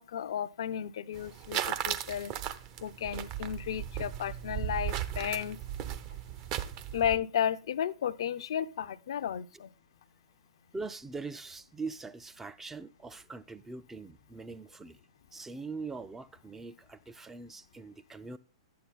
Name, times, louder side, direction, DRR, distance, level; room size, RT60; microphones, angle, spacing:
voice 1, 0.0-2.3 2.8-5.6 6.9-9.7, left 9 dB, 55° left, 0.5 m, -33 dB
sound 1, 1.1-7.2, right 10 dB, 35° right, 0.8 m, -36 dB
voice 2, 10.7-15.0 15.3-18.4, right 4 dB, 10° right, 0.4 m, -42 dB
11.5 x 8.6 x 4.1 m
figure-of-eight pair, 105°, 3 cm